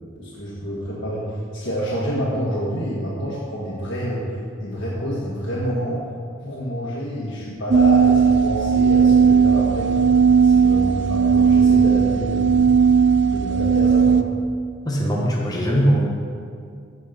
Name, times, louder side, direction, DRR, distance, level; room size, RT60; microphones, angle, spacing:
voice 1, 0.1-4.2 4.6-6.0 6.4-10.1 10.4-14.2, equal, 65° left, -7 dB, 1.7 m, -28 dB
sound 1, 7.7-14.2, right 6 dB, 65° right, 0.5 m, -16 dB
voice 2, 14.8-16.0, equal, 20° left, -2 dB, 1.3 m, -20 dB
15.0 x 5.6 x 5.3 m, 2.3 s
head